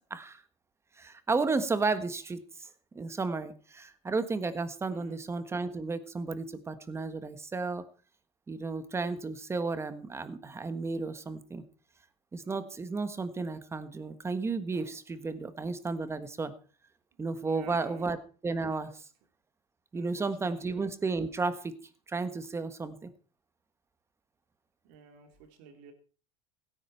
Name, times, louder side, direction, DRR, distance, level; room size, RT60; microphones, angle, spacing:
voice 1, 0.1-0.4 1.0-2.7 2.9-7.8 8.5-11.6 12.3-16.5 17.2-19.0 19.9-21.8 22.1-23.1, right 3 dB, 15° right, 12 dB, 1.4 m, -33 dB
voice 2, 4.9-5.2 17.5-18.1 19.9-20.9 24.8-25.3 25.6-25.9, right 6 dB, 65° right, 5 dB, 3.7 m, -51 dB
16.5 x 10.0 x 4.5 m, 0.38 s
supercardioid pair, 125°, 17 cm